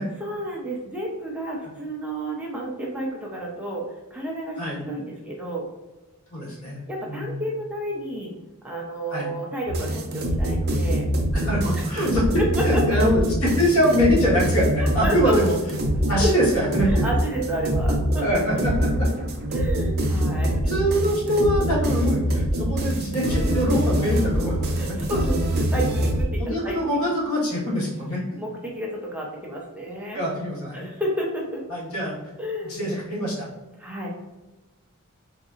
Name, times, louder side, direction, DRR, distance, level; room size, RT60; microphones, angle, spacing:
voice 1, 0.2-5.7 6.9-8.3 8.6-11.1 11.7-11.8 12.4-13.0 14.8-15.6 16.2-16.3 16.8-18.4 19.5-20.6 22.5-22.7 24.8-26.8 27.5-27.6 28.4-30.2 30.7-31.6 32.4-32.8 33.8-34.1, right 1 dB, 5° right, -2 dB, 0.5 m, -30 dB
voice 2, 6.3-6.8 7.1-7.4 9.1-9.3 11.3-15.5 16.1-17.0 18.2-19.1 20.7-25.0 26.4-28.2 30.1-30.9 31.7-32.1 32.6-33.4, equal, 75° left, -5 dB, 1.5 m, -24 dB
sound 1, 9.7-26.2, equal, 50° right, 0.6 m, -24 dB
3.9 x 2.7 x 2.4 m, 1.1 s
head